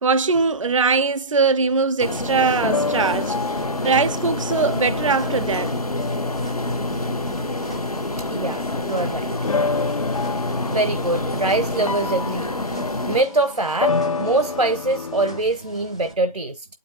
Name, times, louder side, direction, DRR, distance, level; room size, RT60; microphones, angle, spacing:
voice 1, 0.0-5.8, right 4 dB, 60° right, 0.4 m, -21 dB
sound 1, 2.0-13.2, left 2 dB, 85° left, 1.1 m, -27 dB
sound 2, 2.6-8.9 9.4-15.4, left 4 dB, 65° left, 0.4 m, -29 dB
sound 3, 2.7-16.1, equal, 10° left, 0.4 m, -45 dB
voice 2, 8.2-9.3 10.7-12.5 13.1-16.7, right 2 dB, 85° right, 0.8 m, -23 dB
8.3 x 5.2 x 2.8 m
figure-of-eight pair, 155°, 19 cm